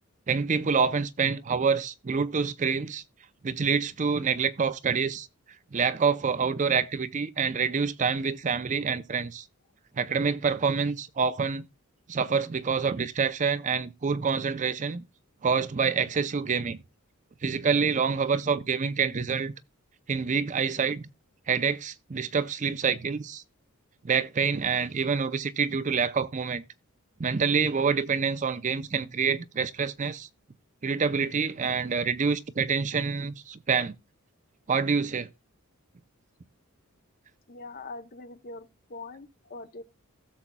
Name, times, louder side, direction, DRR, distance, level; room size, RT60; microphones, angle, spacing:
voice 1, 0.3-3.0 3.4-5.3 5.7-9.5 10.0-11.6 12.1-15.0 15.4-16.8 17.4-19.5 20.1-21.1 21.5-23.4 24.0-26.6 27.2-30.3 30.8-33.9 34.7-35.3, right 5 dB, 35° right, 0.5 m, -27 dB
voice 2, 37.5-38.7 38.9-39.8, left 3 dB, 40° left, 0.7 m, -42 dB
16.0 x 7.2 x 2.2 m
head